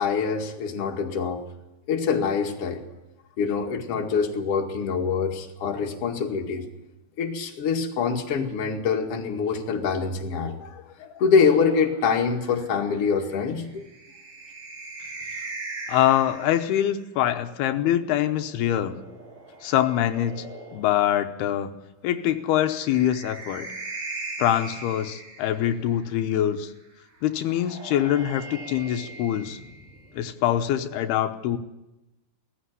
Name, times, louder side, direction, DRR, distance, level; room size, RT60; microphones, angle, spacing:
voice 1, 0.0-1.4 1.9-2.8 3.4-6.7 7.2-13.8, left 5 dB, 45° left, 1 dB, 2.6 m, -25 dB
sound 1, 11.3-16.9 18.2-21.2 22.6-26.0 27.3-30.2, right 3 dB, 65° right, 6.6 m, -40 dB
voice 2, 15.9-18.9 19.6-20.5 20.7-21.7 22.0-23.7 24.4-26.7 27.2-29.6 30.1-31.6, left 11 dB, 85° left, 7 dB, 2.9 m, -24 dB
18.5 x 14.5 x 9.7 m, 0.97 s
omnidirectional pair, 4.5 m